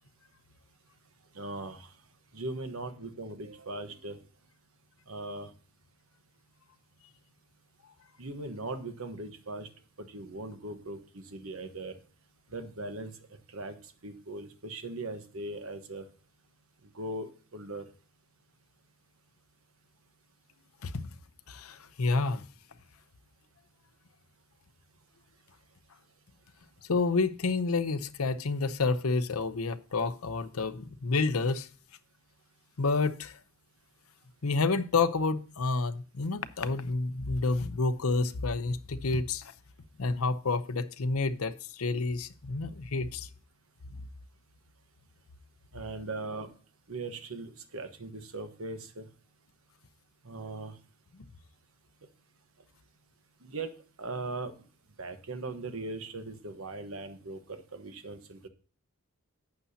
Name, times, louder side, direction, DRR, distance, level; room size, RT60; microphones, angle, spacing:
voice 1, 1.3-1.9 2.3-4.2 5.1-5.5 8.2-9.7 10.0-12.0 12.5-13.1 13.5-13.8 14.0-16.1 16.9-17.8 45.7-46.5 46.9-49.1 50.2-50.7 53.4-53.7 54.0-54.5 55.0-58.5, right 2 dB, 80° right, 1.2 m, -39 dB
voice 2, 20.8-21.1 21.5-22.4 26.9-31.7 32.8-33.4 34.4-39.5 40.0-43.3, left 3 dB, 85° left, 0.7 m, -29 dB
11.5 x 8.6 x 2.8 m
head